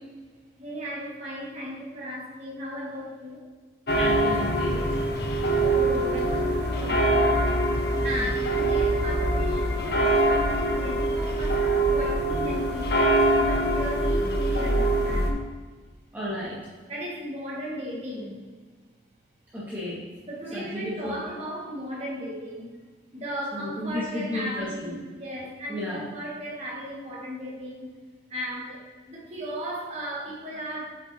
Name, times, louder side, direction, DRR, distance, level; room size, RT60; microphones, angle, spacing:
voice 1, 0.6-3.4 5.6-7.6 8.0-13.1 13.4-15.4 16.9-18.4 20.3-22.8 23.1-27.9 28.3-30.9, equal, 35° right, -5 dB, 1.9 m, -36 dB
sound 1, 3.9-15.3, right 1 dB, 60° left, 1.1 m, -24 dB
voice 2, 4.0-4.9 8.2-8.3 8.6-8.7 14.2-14.3 16.1-16.6 19.5-20.0 20.5-21.1 23.5-25.0 25.7-26.0, left 1 dB, 10° right, -9 dB, 1.9 m, -33 dB
8.8 x 7.8 x 2.8 m, 1.4 s
head